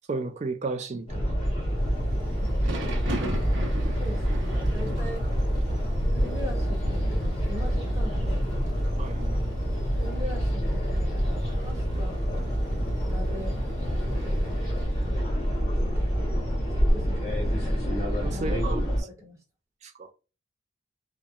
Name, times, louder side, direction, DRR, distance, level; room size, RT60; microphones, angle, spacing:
voice 1, 0.1-1.4 9.0-9.3 18.2-18.9 19.8-20.1, right 3 dB, 35° right, 0.3 m, -33 dB
sound 1, 1.1-19.0, equal, 30° left, 1.3 m, -27 dB
Thunder / Rain, 1.9-15.0, right 1 dB, 60° right, 0.8 m, -41 dB
voice 2, 3.1-3.6 4.0-5.2 6.1-8.7 10.0-12.2 13.1-13.6 14.1-14.6 15.8-17.7 18.3-18.7 19.0-19.4, left 1 dB, 15° right, 0.9 m, -41 dB
2.8 x 2.1 x 2.3 m
head